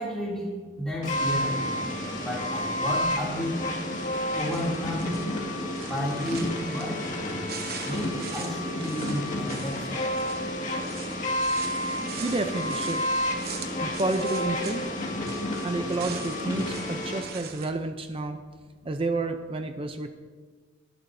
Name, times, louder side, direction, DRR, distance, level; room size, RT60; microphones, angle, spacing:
voice 1, 0.0-1.8 2.1-3.6 4.3-5.1 5.8-7.4 7.8-10.1, equal, 5° left, -8 dB, 2.8 m, -32 dB
sound 1, 1.0-17.2, left 1 dB, 35° left, 1.9 m, -30 dB
sound 2, 4.0-5.3 5.7-7.2 7.5-15.0 15.2-17.7, right 7 dB, 50° right, 1.0 m, -43 dB
voice 2, 12.2-13.0 13.8-14.9 15.6-18.4 18.8-20.1, right 2 dB, 25° right, 7 dB, 0.5 m, -30 dB
19.0 x 11.5 x 2.7 m, 1.5 s
head